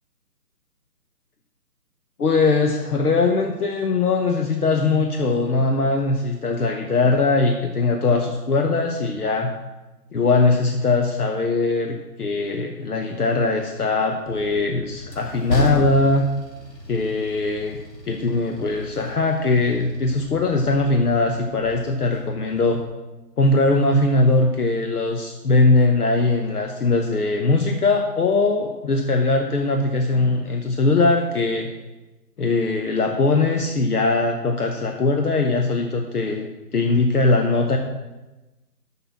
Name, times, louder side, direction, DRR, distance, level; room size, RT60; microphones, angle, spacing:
voice 1, 2.2-9.5 10.1-16.2 16.9-17.8 18.1-22.8 23.4-31.7 32.4-36.5 36.7-37.8, left 3 dB, 65° left, 4 dB, 1.0 m, -20 dB
Train, 14.3-22.9, left 1 dB, 85° left, 2.1 m, -34 dB
6.8 x 5.6 x 7.3 m, 1.1 s
figure-of-eight pair, 165°, 49 cm